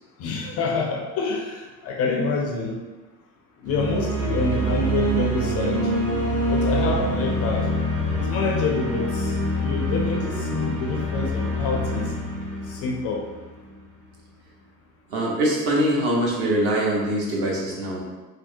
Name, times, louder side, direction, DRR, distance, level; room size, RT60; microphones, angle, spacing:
voice 1, 0.2-2.8 3.6-5.9 6.5-7.7 8.2-12.1 12.7-13.3, left 4 dB, 35° left, 0 dB, 0.4 m, -27 dB
sound 1, 3.7-13.7, right 1 dB, 30° right, 0.9 m, -25 dB
voice 2, 15.1-18.0, right 1 dB, 50° right, -4 dB, 1.1 m, -23 dB
3.3 x 2.1 x 2.7 m, 1.2 s
hypercardioid pair, 85°, 48 cm